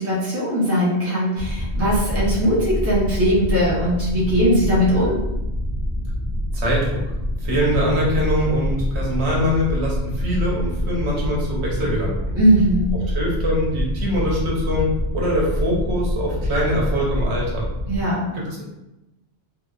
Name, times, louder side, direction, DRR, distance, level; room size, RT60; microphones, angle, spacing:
voice 1, 0.0-5.2 12.3-12.9 17.9-18.3, equal, 15° right, -7 dB, 0.6 m, -20 dB
sound 1, 1.4-18.0, equal, 55° right, 0.7 m, -26 dB
voice 2, 6.5-7.0 7.4-12.2 13.1-14.9 15.1-17.7 18.5-18.6, equal, 75° right, -4 dB, 1.0 m, -23 dB
2.7 x 2.0 x 2.3 m, 0.94 s
omnidirectional pair, 1.2 m